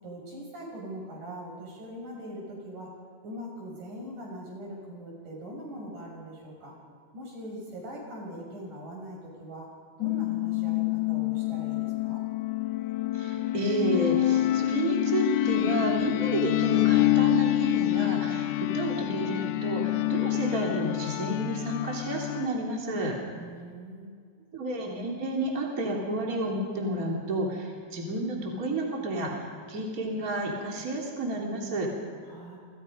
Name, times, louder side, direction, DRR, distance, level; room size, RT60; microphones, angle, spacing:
voice 1, 0.0-2.9 3.2-6.7 7.1-9.7 10.0-12.2 23.3-24.1 32.2-32.6, equal, 85° right, -1 dB, 8.4 m, -41 dB
sound 1, 10.0-22.5, left 16 dB, 90° left, 2.3 m, -27 dB
voice 2, 13.1-23.2 24.5-31.9, right 1 dB, 25° right, -2 dB, 3.7 m, -31 dB
29.0 x 26.5 x 5.4 m, 2.1 s
omnidirectional pair, 3.5 m